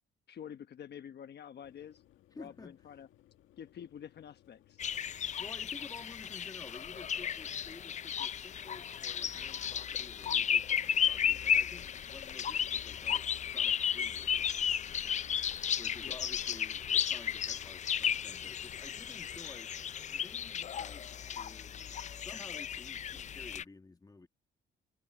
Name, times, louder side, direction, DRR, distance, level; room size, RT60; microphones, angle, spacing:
voice 1, 0.3-2.0 2.3-3.1 3.6-5.1 16.0-16.2, left 9 dB, 55° left, 1.1 m, -48 dB
Boiling, 1.6-19.6, left 14 dB, 85° left, 1.8 m, -63 dB
voice 2, 2.3-2.9 5.4-14.5 15.8-19.7 20.0-24.3, left 3 dB, 20° left, 1.6 m, -52 dB
sound 1, 4.8-23.6, left 8 dB, 35° left, 0.4 m, -34 dB
sound 2, 8.2-22.9, right 11 dB, 75° right, 4.6 m, -71 dB
cardioid pair, 90°, 20 cm